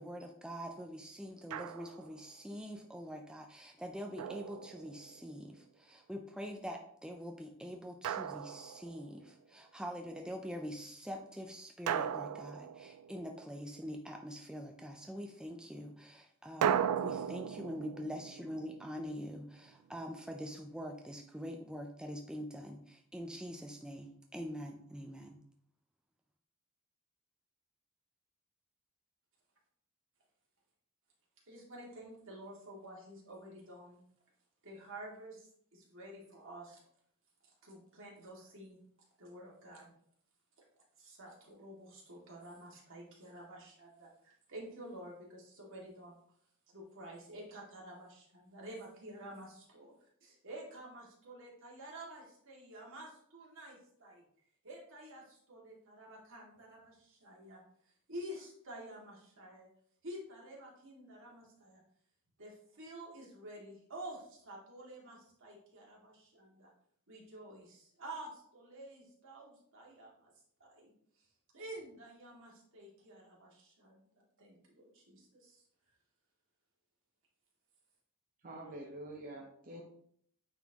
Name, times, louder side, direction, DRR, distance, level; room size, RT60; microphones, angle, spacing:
voice 1, 0.0-25.4, equal, 5° right, 2 dB, 0.4 m, -44 dB
Drum, 1.5-2.2 4.2-5.3 8.0-9.2 11.9-13.5 16.6-19.6, right 9 dB, 85° right, 0.3 m, -37 dB
voice 2, 31.5-34.0 34.6-36.8 37.4-38.8 39.2-39.9 41.0-46.2 46.7-49.9 50.2-54.2 54.6-57.6 58.1-59.7 60.0-61.8 62.4-66.7 67.1-70.3 70.6-70.9 71.2-71.3 71.5-74.1 74.4-75.6, right 1 dB, 60° right, -3 dB, 2.2 m, -50 dB
voice 3, 78.4-79.8, right 1 dB, 40° right, -1 dB, 0.8 m, -46 dB
9.0 x 4.2 x 2.9 m, 0.66 s
head